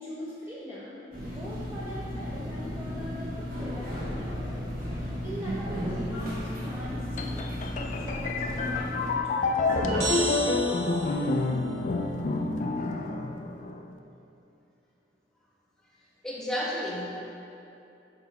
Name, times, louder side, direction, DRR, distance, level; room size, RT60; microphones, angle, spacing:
voice 1, 0.0-4.3 4.9-10.3 10.9-11.4 12.8-12.9, equal, 15° right, -8 dB, 0.7 m, -42 dB
sound 1, 1.1-9.1, equal, 55° right, 1.4 m, -34 dB
sound 2, 7.2-13.9, left 3 dB, 45° left, 0.4 m, -29 dB
sound 3, 9.7-11.4, right 1 dB, 90° right, 1.2 m, -30 dB
voice 2, 16.2-17.1, equal, 5° left, -6 dB, 1.1 m, -31 dB
6.9 x 4.5 x 4.1 m, 2.8 s
head